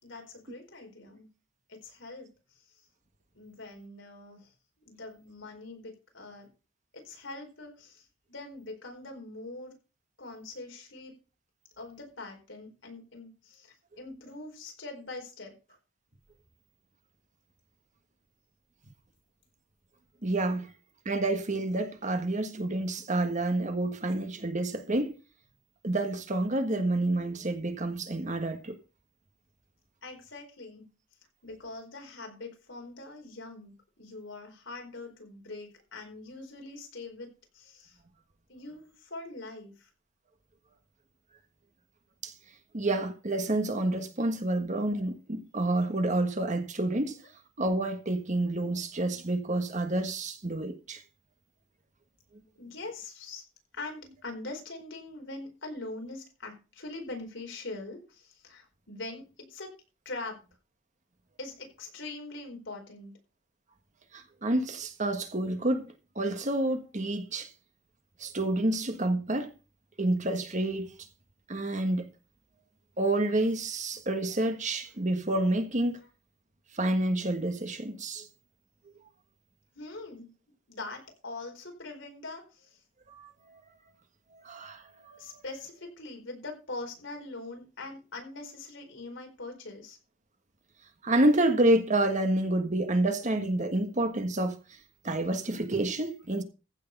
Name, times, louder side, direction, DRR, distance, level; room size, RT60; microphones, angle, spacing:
voice 1, 0.0-1.3 1.7-2.8 3.3-4.5 4.9-6.5 6.9-9.8 10.2-11.2 11.8-15.6 30.0-30.9 31.4-38.0 38.5-39.9 52.6-53.4 53.7-59.7 60.0-60.4 61.4-63.1 79.8-80.3 80.7-82.8 85.2-90.0, left 2 dB, 70° left, 4.5 m, -43 dB
voice 2, 20.2-20.7 21.0-25.1 25.8-28.7 42.2-42.3 42.7-47.2 47.6-51.0 64.1-67.5 68.2-69.5 70.0-70.9 71.5-72.1 73.0-76.0 76.7-78.2 83.1-83.3 84.4-84.8 85.1-85.4 91.0-94.6 95.0-96.4, right 1 dB, 40° right, 1.5 m, -28 dB
15.0 x 6.6 x 5.3 m
head